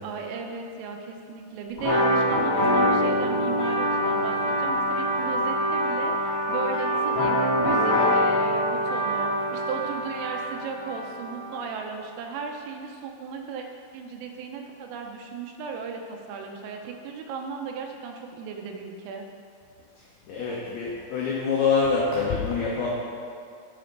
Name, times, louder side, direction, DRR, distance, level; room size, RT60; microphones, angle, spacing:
voice 1, 0.0-13.7 13.9-19.2, right 5 dB, 80° right, 3 dB, 3.3 m, -36 dB
sound 1, 1.8-11.4, equal, 30° left, 1.5 m, -24 dB
voice 2, 20.0-22.9, left 5 dB, 85° left, -4 dB, 2.1 m, -26 dB
10.0 x 5.6 x 5.2 m, 2.3 s
omnidirectional pair, 5.9 m